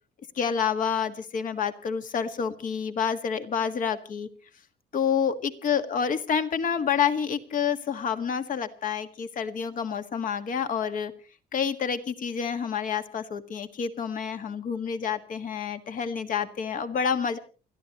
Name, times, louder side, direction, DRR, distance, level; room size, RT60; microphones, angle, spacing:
voice 1, 0.3-4.3 4.9-11.1 11.5-17.4, left 7 dB, 50° left, 10 dB, 1.7 m, -28 dB
29.0 x 13.0 x 3.0 m, 0.37 s
cardioid pair, 110°, 17 cm